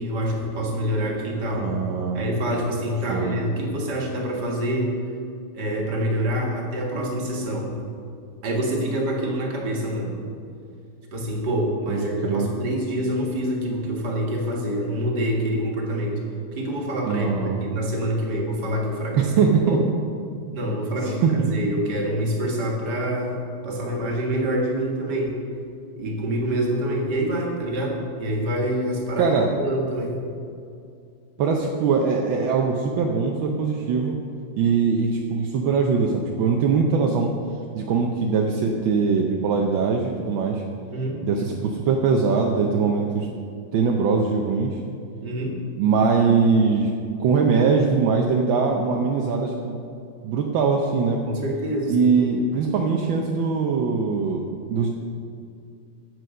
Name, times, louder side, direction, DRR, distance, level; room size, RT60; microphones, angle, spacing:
voice 1, 0.0-1.7 2.1-4.9 5.5-7.8 8.4-10.2 11.1-16.2 16.6-19.3 19.6-19.8 20.5-25.3 26.0-30.2 40.9-41.2 45.2-45.6 51.2-52.3, equal, 60° right, 0 dB, 2.2 m, -26 dB
voice 2, 1.5-2.3 3.1-3.4 11.9-12.5 17.0-17.6 19.2-19.8 20.5-20.6 21.0-21.5 29.2-29.5 31.4-34.1 34.6-37.3 37.7-40.6 41.2-43.3 43.7-44.8 45.8-46.9 47.2-49.8 50.2-51.2 51.9-54.9, right 5 dB, 80° right, 1 dB, 1.5 m, -22 dB
9.1 x 8.2 x 6.3 m, 2.4 s
omnidirectional pair, 2.1 m